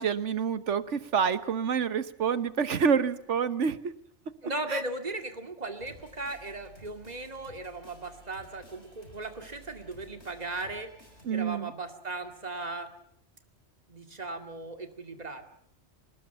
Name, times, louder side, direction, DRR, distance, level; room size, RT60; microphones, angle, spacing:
voice 1, 0.0-3.8 4.7-4.8 11.2-11.7, right 6 dB, 80° right, 13 dB, 1.5 m, -27 dB
voice 2, 4.4-10.9 11.3-12.9 13.9-15.5, right 2 dB, 35° right, 6 dB, 2.4 m, -37 dB
sound 1, 5.8-11.3, left 1 dB, 70° left, 6.4 m, -54 dB
26.5 x 19.5 x 6.9 m, 0.70 s
omnidirectional pair, 1.2 m